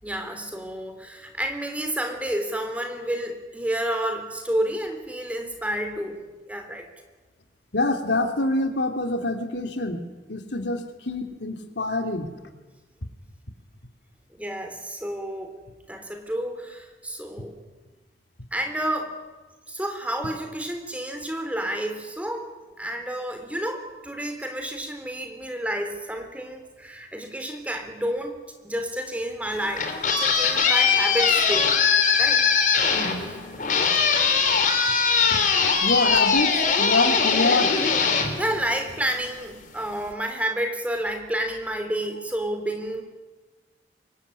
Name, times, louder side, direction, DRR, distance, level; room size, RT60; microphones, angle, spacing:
voice 1, 0.0-6.2 6.5-6.9 14.3-15.6 15.9-17.6 18.5-19.1 19.7-31.7 32.2-32.5 33.1-33.4 38.4-43.0, right 1 dB, 10° right, 5 dB, 3.6 m, -30 dB
voice 2, 7.7-10.0 10.3-12.3 35.3-35.4 35.8-37.9, left 2 dB, 85° left, 5 dB, 3.1 m, -25 dB
sound 1, 29.5-39.2, left 5 dB, 50° left, 3.7 m, -21 dB
25.0 x 23.0 x 9.8 m, 1.2 s
head